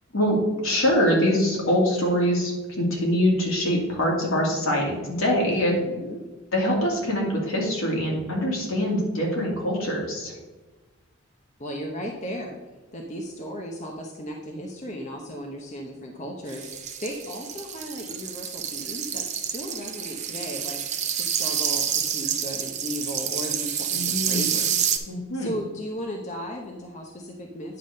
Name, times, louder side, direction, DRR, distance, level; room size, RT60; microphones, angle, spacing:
voice 1, 0.1-5.8 6.5-10.3 23.9-24.5 25.1-25.5, equal, 75° left, -2 dB, 2.5 m, -24 dB
voice 2, 5.6-6.2 11.6-12.6 12.9-16.7 17.0-20.8 21.2-27.8, equal, 35° left, 0 dB, 0.8 m, -36 dB
sound 1, 16.5-25.0, right 8 dB, 35° right, 0.7 m, -28 dB
9.6 x 3.6 x 6.4 m, 1.2 s
head